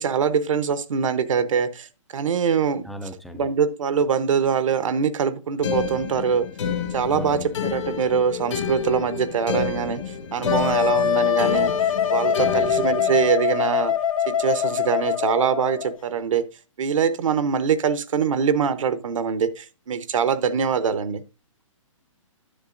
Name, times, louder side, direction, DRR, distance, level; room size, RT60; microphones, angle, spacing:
voice 1, 0.0-2.8 3.3-6.5 6.9-10.0 10.3-11.7 12.1-13.9 14.3-16.4 16.8-21.2, right 7 dB, 75° right, 0.9 m, -23 dB
voice 2, 2.8-3.5 7.1-7.5 12.4-12.8, equal, ahead, 0.3 m, -37 dB
sound 1, 5.6-13.3, left 5 dB, 60° left, 1.5 m, -29 dB
Wind instrument woodwind instrument, 10.5-16.0, left 9 dB, 85° left, 1.2 m, -23 dB
10.0 x 7.7 x 2.5 m
hypercardioid pair, 155°, 17 cm